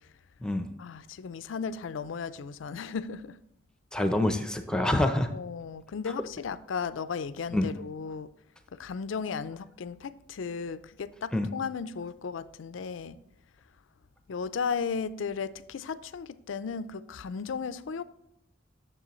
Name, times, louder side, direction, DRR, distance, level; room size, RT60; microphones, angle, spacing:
voice 1, 0.8-3.4 5.3-8.3 8.7-13.2 14.3-18.0, left 5 dB, 85° left, 0.4 m, -35 dB
voice 2, 3.9-5.3 7.5-7.7 11.3-11.5, left 1 dB, 5° left, 0.5 m, -26 dB
9.9 x 7.0 x 3.0 m
head